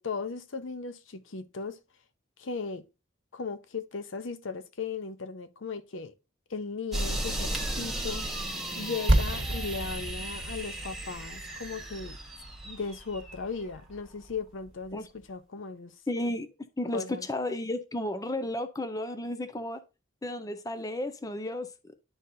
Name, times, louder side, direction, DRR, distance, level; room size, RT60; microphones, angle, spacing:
voice 1, 0.0-1.8 2.4-2.8 3.3-6.1 6.5-8.2 8.8-12.2 12.6-15.9 16.9-17.3, left 4 dB, 70° left, 0.7 m, -37 dB
sound 1, 6.9-13.3, right 1 dB, ahead, 1.1 m, -35 dB
sound 2, 9.1-14.8, right 1 dB, 60° right, 1.4 m, -31 dB
voice 2, 16.1-16.5 16.8-19.8 20.2-21.7, left 1 dB, 20° left, 0.6 m, -33 dB
11.0 x 4.0 x 2.7 m
head